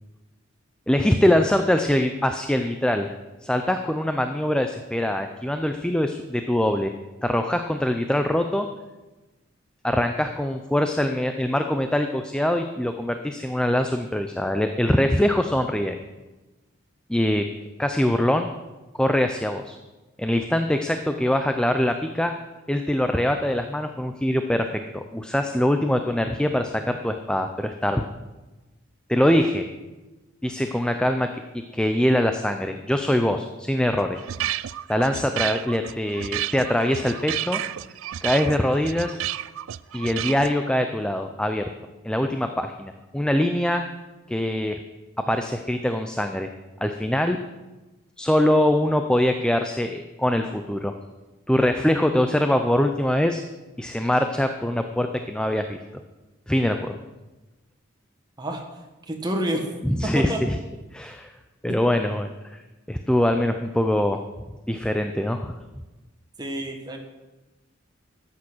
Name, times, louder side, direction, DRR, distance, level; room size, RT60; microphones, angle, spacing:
voice 1, 0.9-3.1 3.4-6.9 7.2-8.7 9.8-16.0 17.1-17.5 17.8-18.5 19.0-19.8 20.2-22.3 22.7-28.1 29.1-29.7 30.4-31.3 31.7-34.2 34.9-37.6 38.2-39.1 39.9-41.7 42.0-43.9 44.3-44.8 45.3-46.5 46.8-47.4 48.2-50.9 51.5-53.4 53.8-55.8 56.5-57.0 59.8-60.6 60.9-61.3 61.6-62.3 62.9-64.2 64.7-65.5, left 1 dB, 5° left, 6 dB, 0.5 m, -23 dB
sound 1, 34.0-40.5, right 12 dB, 80° right, 0.4 m, -31 dB
voice 2, 59.1-59.7 60.0-60.4 61.7-61.8 66.4-67.0, right 1 dB, 20° right, 2 dB, 1.5 m, -28 dB
13.0 x 8.6 x 6.2 m, 1.1 s
head